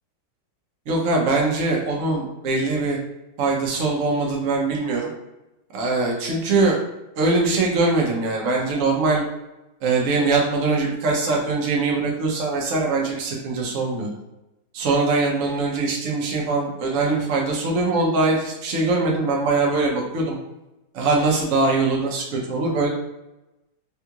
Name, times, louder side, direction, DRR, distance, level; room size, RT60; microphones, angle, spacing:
voice 1, 0.9-3.0 3.4-5.1 5.7-6.8 7.1-9.2 9.8-14.1 14.7-20.4 20.9-22.9, right 3 dB, 60° right, -2 dB, 0.8 m, -22 dB
3.6 x 2.3 x 2.8 m, 0.97 s
omnidirectional pair, 2.2 m